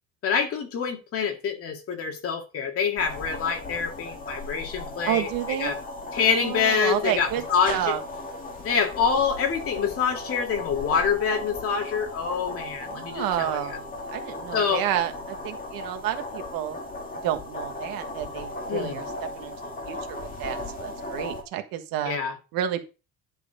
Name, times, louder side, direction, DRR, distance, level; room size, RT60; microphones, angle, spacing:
voice 1, 0.2-5.8 6.1-7.9 8.6-13.8 14.5-14.8 18.7-19.0 22.1-22.4, left 6 dB, 40° left, 2.0 m, -26 dB
sound 1, 3.0-21.4, left 2 dB, 25° left, 1.8 m, -36 dB
voice 2, 5.1-5.7 6.3-8.0 12.9-16.8 17.2-19.1 19.4-22.2 22.5-22.8, right 11 dB, 75° right, 1.6 m, -30 dB
11.5 x 4.6 x 5.0 m
cardioid pair, 170°, 36 cm